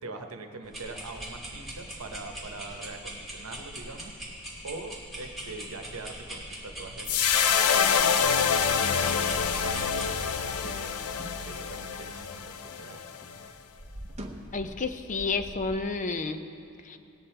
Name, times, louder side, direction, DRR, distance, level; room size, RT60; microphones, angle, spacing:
voice 1, 0.0-4.1 4.6-7.9 8.3-11.0 11.5-13.0, right 3 dB, 75° right, 5 dB, 1.0 m, -43 dB
sound 1, 0.6-10.1, right 1 dB, ahead, 2.7 m, -41 dB
sound 2, 7.1-13.5, left 7 dB, 90° left, 0.5 m, -26 dB
sound 3, 10.6-13.0 13.2-15.8, equal, 30° right, 0.9 m, -46 dB
voice 2, 14.5-16.4 16.9-17.0, left 4 dB, 35° left, 8 dB, 0.6 m, -30 dB
19.0 x 8.5 x 4.4 m, 2.7 s
head